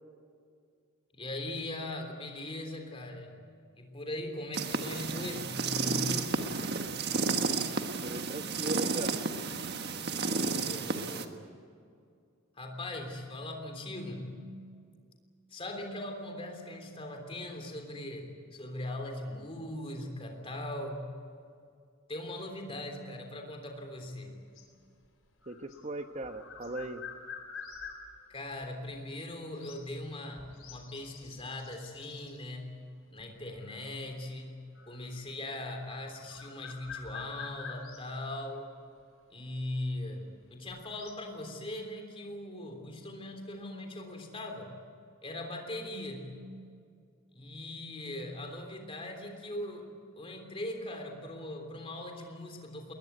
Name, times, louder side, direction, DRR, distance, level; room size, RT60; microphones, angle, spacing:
voice 1, 1.1-3.4 3.7-6.4 10.3-11.3 12.6-14.4 15.5-21.2 22.1-24.5 28.3-38.8 39.3-44.8 45.2-46.4 47.3-52.9, left 1 dB, 25° left, 4 dB, 3.3 m, -40 dB
sound 1, 4.5-11.2, right 4 dB, 50° right, 1.5 m, -32 dB
voice 2, 8.0-9.2 25.5-27.0, right 2 dB, 30° right, 8 dB, 1.1 m, -38 dB
sound 2, 24.1-28.7 29.6-29.9 30.3-32.4 33.2-34.1 34.7-35.3 35.7-38.2 39.0-39.1 40.4-41.3, left 6 dB, 70° left, 4.0 m, -47 dB
21.5 x 20.5 x 9.5 m, 2.3 s
head